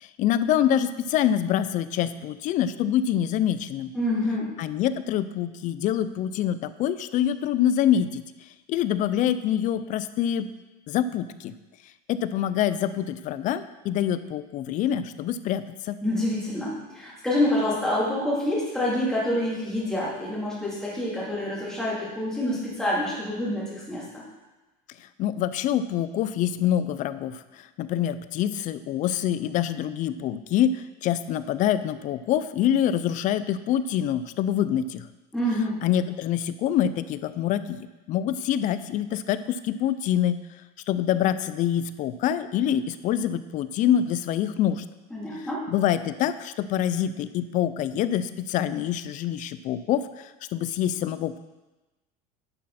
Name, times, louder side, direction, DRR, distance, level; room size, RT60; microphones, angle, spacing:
voice 1, 0.0-3.9 4.6-8.2 8.7-10.5 10.9-11.5 12.1-16.0 25.2-35.1 35.8-40.4 40.9-44.8 45.7-51.4, left 10 dB, 40° left, 14 dB, 0.5 m, -25 dB
voice 2, 3.9-4.5 16.0-24.2 35.3-35.8 45.1-45.7, left 1 dB, 5° left, -8 dB, 3.2 m, -27 dB
10.5 x 6.3 x 4.2 m, 1.1 s
supercardioid pair, 140°, 20 cm